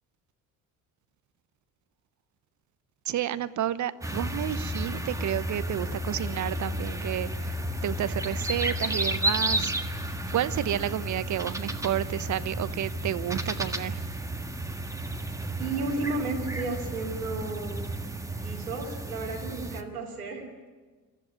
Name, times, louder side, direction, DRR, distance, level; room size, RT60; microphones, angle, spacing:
voice 1, 3.1-7.6 7.8-9.7 10.3-14.0, right 11 dB, 40° right, 16 dB, 0.9 m, -30 dB
sound 1, 4.0-19.8, right 1 dB, 5° right, 1.6 m, -32 dB
voice 2, 15.6-17.8 18.3-20.5, right 3 dB, 90° right, -2 dB, 2.9 m, -33 dB
23.0 x 14.0 x 9.6 m, 1.4 s
figure-of-eight pair, 55°, 43 cm